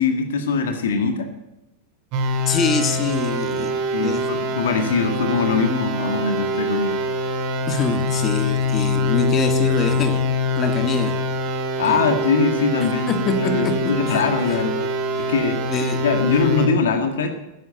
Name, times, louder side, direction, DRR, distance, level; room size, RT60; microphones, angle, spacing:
voice 1, 0.0-1.3 3.9-7.0 11.8-13.1 13.4-15.6 16.0-17.3, left 5 dB, 60° left, 7 dB, 1.7 m, -22 dB
sound 1, 2.1-16.7, left 1 dB, 45° right, 2.1 m, -24 dB
voice 2, 2.5-4.3 7.7-10.3 10.6-11.2 11.9-12.1 13.1-14.2 14.5-14.6 15.2-15.3 15.7-16.0, left 4 dB, 30° left, 8 dB, 1.8 m, -25 dB
12.5 x 10.0 x 8.0 m, 0.95 s
figure-of-eight pair, 90°, 0 cm